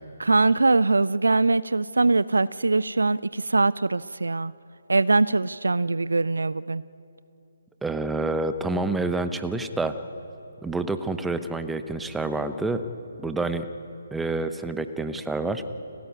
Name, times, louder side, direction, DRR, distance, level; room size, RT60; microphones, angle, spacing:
voice 1, 0.2-4.5 4.9-6.8, right 3 dB, 65° right, 20 dB, 0.4 m, -22 dB
voice 2, 7.8-9.9 10.6-12.8 13.2-13.7 14.1-15.6, right 2 dB, 5° right, 10 dB, 0.8 m, -28 dB
30.0 x 14.5 x 9.6 m, 2.9 s
figure-of-eight pair, 140°, 0 cm